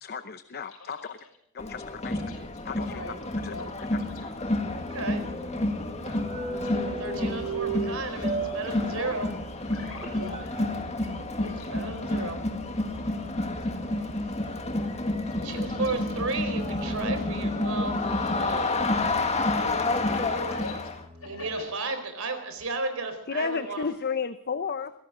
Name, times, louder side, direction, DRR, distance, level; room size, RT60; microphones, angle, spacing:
voice 1, 0.0-1.2 1.5-2.2 2.6-3.0 3.4-3.5 23.3-24.9, left 5 dB, 50° left, 11 dB, 0.8 m, -33 dB
voice 2, 0.7-1.1 2.0-4.3 5.9-6.2 6.5-7.7 8.1-9.2 9.6-10.7 11.3-12.1 12.9-13.7 14.6-16.0 18.7-20.9 21.2-21.7, left 2 dB, 80° left, 3 dB, 6.7 m, -43 dB
Crowd, 1.6-21.0, left 2 dB, 30° left, 1.9 m, -30 dB
sound 1, 4.7-12.9 13.5-21.6, right 3 dB, 30° right, 3.5 m, -39 dB
voice 3, 4.9-5.3 7.0-9.3 11.7-12.4 15.4-18.0 18.3-19.0 21.2-23.8, right 3 dB, 75° right, 7 dB, 4.3 m, -33 dB
22.0 x 17.0 x 3.9 m, 0.75 s
head